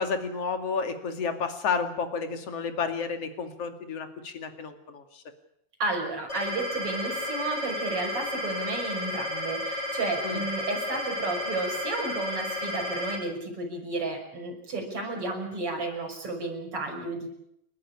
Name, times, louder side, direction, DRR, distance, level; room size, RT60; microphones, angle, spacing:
voice 1, 0.0-5.2 10.2-10.4, left 5 dB, 55° left, 7 dB, 3.3 m, -31 dB
voice 2, 5.8-17.3, right 3 dB, 45° right, 2 dB, 6.9 m, -32 dB
sound 1, 6.3-13.2, left 1 dB, 30° left, 8.6 m, -32 dB
30.0 x 12.5 x 10.0 m, 0.77 s
omnidirectional pair, 3.5 m